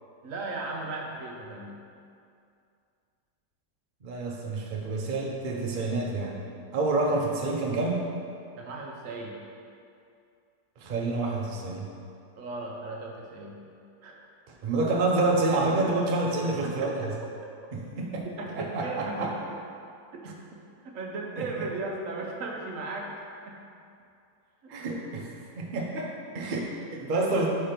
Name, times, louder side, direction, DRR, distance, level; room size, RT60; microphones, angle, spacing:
voice 1, 0.2-1.7 8.6-9.4 12.4-13.6 14.0-14.2 16.6-16.7 18.4-19.3 20.1-20.3 20.8-23.1 23.4-23.6 24.6-24.7 27.1-27.5, right 3 dB, 60° right, -1 dB, 1.0 m, -36 dB
voice 2, 4.0-6.4 6.7-8.0 10.8-11.9 14.5-17.1 17.7-18.2 18.5-19.3 21.4-21.6 24.7-27.5, right 2 dB, 90° right, -1 dB, 0.4 m, -28 dB
4.7 x 4.4 x 5.1 m, 2.4 s
omnidirectional pair, 1.9 m